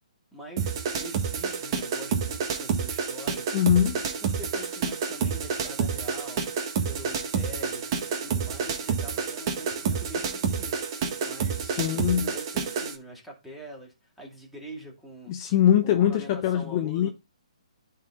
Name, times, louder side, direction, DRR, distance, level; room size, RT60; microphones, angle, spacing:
voice 1, 0.3-3.5 4.2-6.4 6.8-7.8 8.2-10.8 11.2-15.5 15.8-17.1, equal, ahead, 2.5 m, -44 dB
sound 1, 0.6-13.0, right 6 dB, 35° right, 1.7 m, -29 dB
voice 2, 3.5-4.0 11.6-12.3 15.3-17.1, left 10 dB, 35° left, 0.8 m, -23 dB
10.5 x 4.5 x 3.6 m
hypercardioid pair, 150°, 4 cm